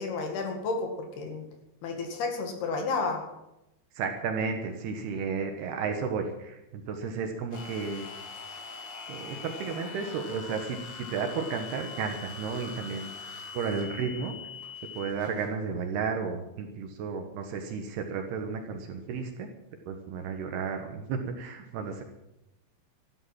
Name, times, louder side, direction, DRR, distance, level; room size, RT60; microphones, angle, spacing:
voice 1, 0.0-1.4 1.8-3.2, left 3 dB, 60° left, 3 dB, 3.5 m, -31 dB
voice 2, 3.9-8.1 9.1-13.1 13.5-14.3 14.9-19.5 19.9-22.0, right 5 dB, 70° right, 5 dB, 2.8 m, -33 dB
sound 1, 7.5-15.1, left 7 dB, 75° left, 1.1 m, -44 dB
sound 2, 7.5-15.5, left 2 dB, 30° left, 2.2 m, -47 dB
13.5 x 11.5 x 7.5 m, 0.90 s
omnidirectional pair, 5.9 m